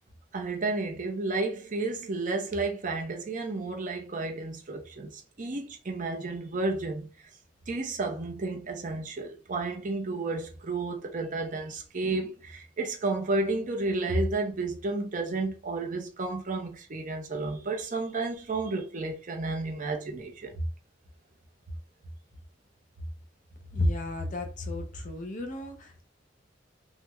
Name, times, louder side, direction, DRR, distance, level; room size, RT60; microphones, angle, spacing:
voice 1, 0.3-7.1 7.7-20.5, right 3 dB, 45° right, 0.7 m, -32 dB
voice 2, 23.7-26.0, left 1 dB, 45° left, 0.6 m, -32 dB
3.4 x 2.2 x 3.0 m
head